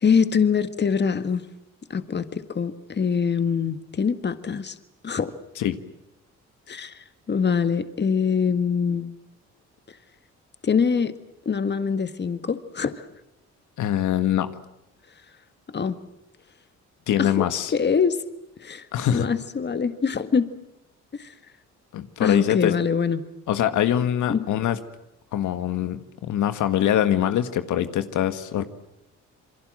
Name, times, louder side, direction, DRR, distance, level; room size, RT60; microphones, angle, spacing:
voice 1, 0.0-1.4 1.9-4.8 5.0-5.3 6.7-9.1 10.6-11.1 11.5-13.1 15.7-16.0 17.2-18.2 18.6-20.5 21.1-21.3 22.2-23.3 24.3-24.5, left 6 dB, 35° left, 11 dB, 1.8 m, -24 dB
voice 2, 13.8-14.5 17.1-17.7 18.9-19.3 21.9-22.7 23.5-24.8 25.3-28.6, left 11 dB, 75° left, 10 dB, 1.7 m, -23 dB
28.5 x 22.5 x 7.7 m, 0.87 s
cardioid pair, 90°, 30 cm